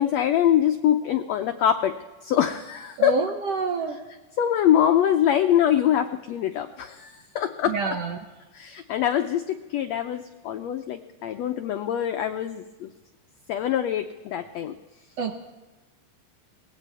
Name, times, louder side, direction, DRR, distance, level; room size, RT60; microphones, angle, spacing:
voice 1, 0.0-1.9 2.2-3.2 4.4-7.7 8.5-12.9 13.5-14.7, left 10 dB, 85° left, 7 dB, 1.5 m, -24 dB
voice 2, 3.0-4.0 7.7-8.2 15.2-15.3, right 4 dB, 70° right, 4 dB, 1.6 m, -27 dB
22.5 x 18.0 x 3.4 m, 1.2 s
omnidirectional pair, 3.9 m